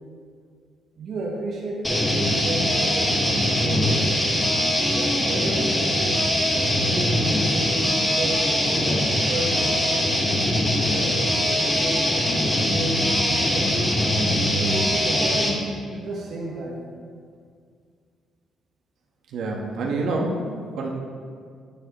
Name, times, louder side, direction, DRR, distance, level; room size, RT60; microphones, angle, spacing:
voice 1, 1.0-3.2 3.5-4.2 4.9-5.9 6.8-10.1 10.8-13.8 14.2-15.5 15.9-16.8, right 2 dB, 60° right, -2 dB, 1.2 m, -32 dB
sound 1, 1.8-15.6, left 1 dB, 15° left, 1.6 m, -22 dB
voice 2, 19.3-20.4 20.8-20.9, right 3 dB, 80° right, -2 dB, 1.4 m, -26 dB
10.5 x 9.1 x 3.1 m, 2.1 s
cardioid pair, 90°, 0 cm